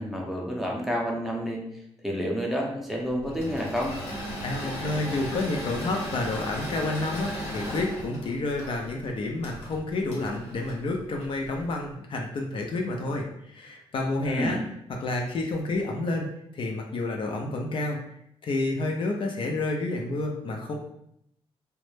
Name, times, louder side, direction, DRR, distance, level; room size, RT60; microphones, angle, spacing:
voice 1, 0.0-1.6 2.0-4.0 14.2-14.6, equal, ahead, -1 dB, 0.6 m, -29 dB
Engine / Mechanisms, 3.2-11.6, equal, 80° left, 1.1 m, -36 dB
voice 2, 4.4-14.6 15.0-18.0 18.4-20.8, left 2 dB, 50° left, 1 dB, 0.4 m, -29 dB
2.1 x 2.0 x 3.1 m, 0.75 s
cardioid pair, 85°, 11 cm